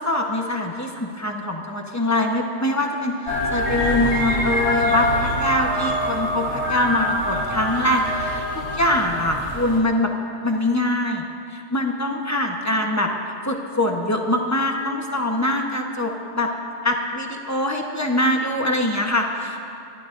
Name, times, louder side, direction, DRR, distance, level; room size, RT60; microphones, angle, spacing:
voice 1, 0.0-10.1 10.4-13.1 13.4-16.5 16.8-19.6, left 1 dB, 15° left, 1 dB, 0.9 m, -23 dB
sound 1, 3.3-9.8, left 1 dB, 90° left, 3.2 m, -24 dB
27.0 x 12.0 x 2.6 m, 2.5 s
omnidirectional pair, 1.5 m